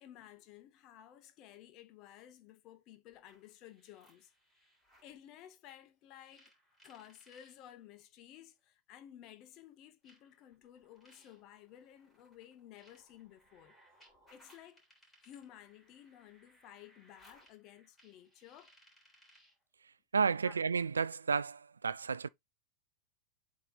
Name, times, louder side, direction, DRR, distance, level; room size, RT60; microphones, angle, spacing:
voice 1, 0.0-4.3 5.0-6.5 6.8-13.8 14.3-14.8 15.2-18.7 20.4-20.6, left 11 dB, 40° left, 0.9 m, -55 dB
sound 1, 3.1-5.2 6.3-7.6 8.6-8.7 10.0-19.6, equal, 10° left, 3.3 m, -66 dB
voice 2, 20.1-22.3, right 5 dB, 75° right, 0.3 m, -32 dB
7.8 x 3.0 x 4.0 m
figure-of-eight pair, 90°, 0 cm